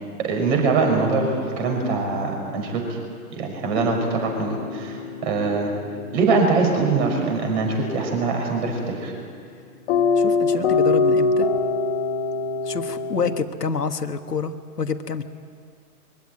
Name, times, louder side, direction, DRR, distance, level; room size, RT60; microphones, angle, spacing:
voice 1, 0.2-3.0 3.3-5.7 6.1-9.1, right 4 dB, 45° right, 2 dB, 6.1 m, -23 dB
sound 1, 3.7-13.4, left 4 dB, 45° left, 1.9 m, -25 dB
voice 2, 10.2-11.5 12.6-15.2, left 5 dB, 85° left, 8 dB, 1.5 m, -27 dB
23.5 x 16.0 x 9.7 m, 2.3 s
figure-of-eight pair, 120°, 46 cm